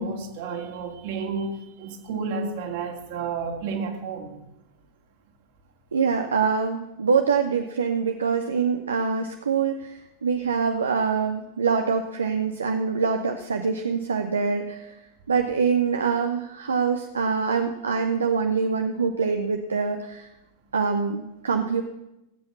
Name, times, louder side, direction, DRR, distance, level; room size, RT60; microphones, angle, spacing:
voice 1, 0.0-4.3, right 4 dB, 50° right, 2.2 m, -31 dB
voice 2, 5.9-14.8 15.3-20.3 20.7-21.8, right 5 dB, 70° right, 0.8 m, -24 dB
18.0 x 7.9 x 7.0 m
figure-of-eight pair, 90°, 0 cm